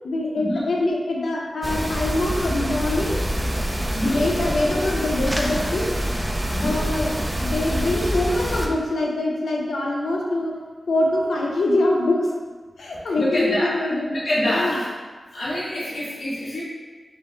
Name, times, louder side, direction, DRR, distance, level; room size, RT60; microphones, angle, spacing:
voice 1, 0.0-3.2 4.0-5.9 6.6-7.1 7.4-10.5 10.9-12.3 12.8-14.1 14.4-14.8, left 2 dB, 90° left, -2 dB, 0.7 m, -24 dB
sound 1, 1.6-8.7, right 1 dB, 10° right, 0.4 m, -26 dB
voice 2, 3.9-4.3 6.5-6.8 7.8-8.0 13.1-13.8 14.1-14.9 15.3-16.6, equal, 70° left, -8 dB, 1.3 m, -26 dB
5.3 x 2.2 x 3.8 m, 1.4 s
wide cardioid pair, 125°, 0 cm